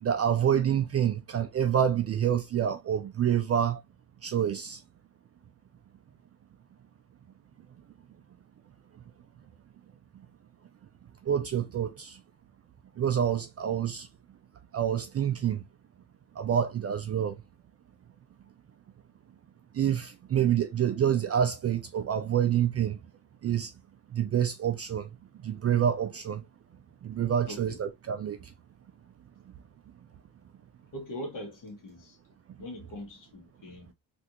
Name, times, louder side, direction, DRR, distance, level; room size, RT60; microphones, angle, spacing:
voice 1, 0.0-3.8 4.2-4.8 11.2-12.2 13.0-14.1 14.7-15.6 16.4-17.4 19.7-23.0 23.4-23.7 24.1-25.1 25.4-26.4 27.0-28.5, right 9 dB, 35° right, 0.4 m, -27 dB
voice 2, 27.5-27.8 30.9-32.2 32.6-33.9, equal, 45° left, 1.3 m, -41 dB
3.3 x 2.5 x 2.9 m
cardioid pair, 145°, 44 cm